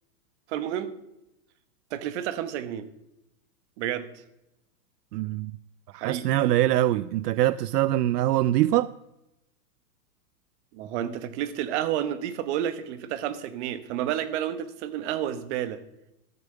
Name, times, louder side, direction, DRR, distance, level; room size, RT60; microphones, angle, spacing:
voice 1, 0.5-0.9 1.9-2.9 3.8-4.1 5.9-6.3 10.7-15.8, right 11 dB, 45° right, 1.2 m, -30 dB
voice 2, 5.1-5.5 5.9-8.9, right 14 dB, 75° right, 0.5 m, -23 dB
13.5 x 7.0 x 6.8 m
hypercardioid pair, 145°, 48 cm